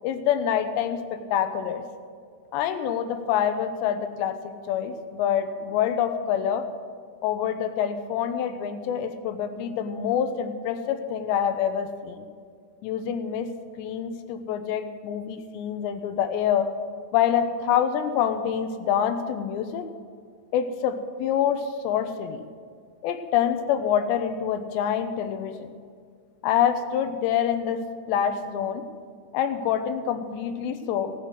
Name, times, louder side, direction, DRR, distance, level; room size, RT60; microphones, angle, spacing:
voice 1, 0.0-1.8 2.5-6.7 7.2-12.3 12.8-13.5 13.8-16.7 17.1-19.9 20.5-22.5 23.0-25.7 26.4-28.9 29.3-31.1, left 9 dB, 80° left, 9 dB, 2.8 m, -26 dB
17.0 x 8.4 x 6.2 m, 2.1 s
omnidirectional pair, 5.4 m